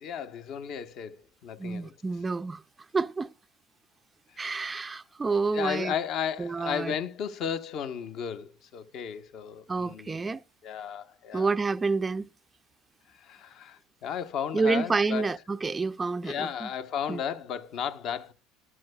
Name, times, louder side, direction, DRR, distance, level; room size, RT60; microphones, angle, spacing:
voice 1, 0.0-1.9 4.3-5.0 5.5-10.4 10.6-11.6 13.1-15.3 16.2-18.3, left 8 dB, 55° left, 0.9 m, -34 dB
voice 2, 1.6-2.6 2.9-3.3 4.4-5.9 6.4-6.9 9.7-10.4 11.3-12.3 14.5-16.7 17.1-17.2, right 4 dB, 20° right, 0.4 m, -28 dB
12.5 x 11.0 x 2.2 m
hypercardioid pair, 80°, 0 cm